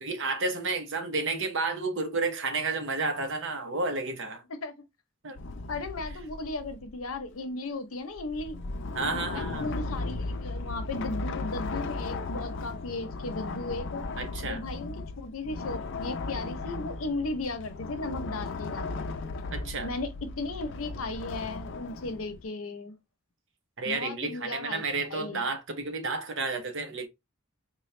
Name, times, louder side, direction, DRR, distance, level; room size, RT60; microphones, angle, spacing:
voice 1, 0.0-4.4 5.2-5.4 8.9-9.7 14.2-14.6 19.5-19.9 23.8-27.1, right 3 dB, 65° right, 0.8 m, -31 dB
sound 1, 5.4-7.3 8.2-22.4, left 3 dB, 60° left, 0.5 m, -36 dB
voice 2, 5.7-8.6 9.3-14.1 14.4-19.0 19.8-23.0 23.8-24.8 25.1-25.4, left 2 dB, 85° left, 0.8 m, -36 dB
4.1 x 2.2 x 3.1 m
head